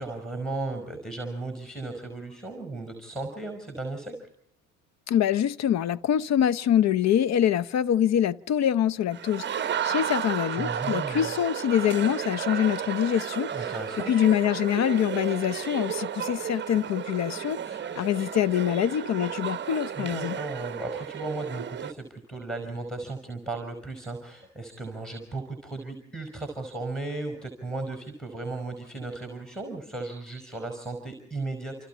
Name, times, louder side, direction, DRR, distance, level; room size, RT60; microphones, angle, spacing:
voice 1, 0.0-4.2 10.6-11.3 13.5-14.1 20.0-31.8, right 3 dB, ahead, 5.3 m, -35 dB
voice 2, 5.1-9.4 9.8-13.5 14.1-17.6 17.9-20.4, left 10 dB, 35° left, 0.8 m, -25 dB
sound 1, 9.1-21.9, right 9 dB, 25° right, 1.1 m, -33 dB
29.0 x 28.0 x 4.4 m
hypercardioid pair, 70°, 46 cm